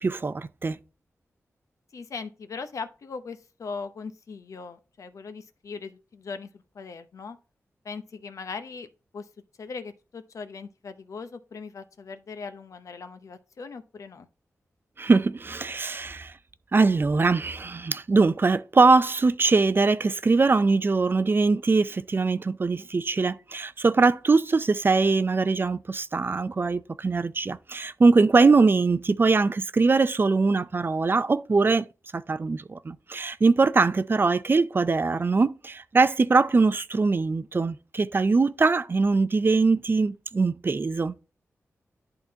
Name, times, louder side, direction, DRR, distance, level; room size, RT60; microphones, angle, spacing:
voice 1, 0.0-0.8 15.0-16.3 16.7-31.9 32.1-41.2, right 4 dB, 40° right, 0.5 m, -22 dB
voice 2, 1.9-7.4 7.8-8.9 9.1-9.3 9.6-14.3, left 4 dB, 75° left, 0.8 m, -39 dB
11.0 x 3.8 x 2.8 m
cardioid pair, 60°, 6 cm